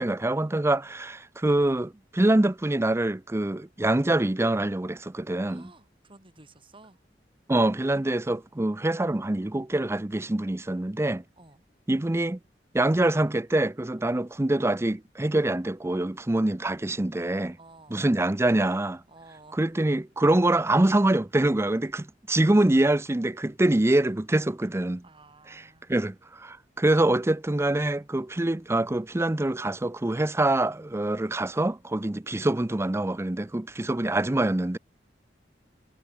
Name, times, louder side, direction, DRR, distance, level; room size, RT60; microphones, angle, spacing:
voice 1, 0.0-5.7 7.5-11.2 11.9-12.4 12.7-17.6 17.9-19.0 19.6-25.0 25.9-34.8, right 1 dB, 15° right, 0.5 m, -25 dB
voice 2, 5.5-7.0 11.4-11.6 17.6-18.1 19.1-19.8 25.0-25.9, right 2 dB, 30° right, 7.8 m, -53 dB
head